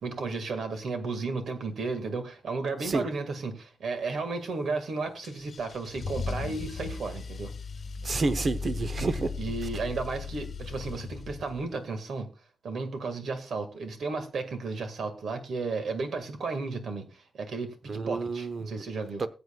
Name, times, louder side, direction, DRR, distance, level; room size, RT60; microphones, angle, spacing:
voice 1, 0.0-7.5 9.4-12.3 12.6-19.2, right 3 dB, 85° right, 1.8 m, -33 dB
Car / Engine starting / Accelerating revving vroom, 5.2-11.7, left 4 dB, 50° left, 1.4 m, -37 dB
voice 2, 8.0-9.3 17.9-18.7 19.2-19.3, right 3 dB, 40° right, 0.7 m, -29 dB
20.5 x 8.0 x 2.3 m
wide cardioid pair, 175°, 0 cm